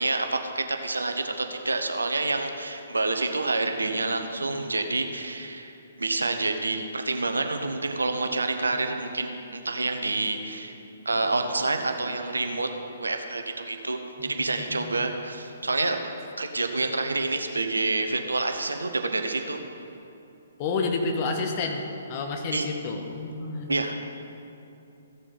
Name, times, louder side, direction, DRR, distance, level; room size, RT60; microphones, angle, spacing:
voice 1, 0.0-10.7 11.0-12.7 13.0-19.6 22.5-22.7 23.7-23.9, right 2 dB, 75° right, 5 dB, 1.0 m, -28 dB
voice 2, 14.2-15.0 20.6-23.7, left 3 dB, 35° left, 3 dB, 1.3 m, -30 dB
15.0 x 7.0 x 5.3 m, 2.7 s
figure-of-eight pair, 125°, 0 cm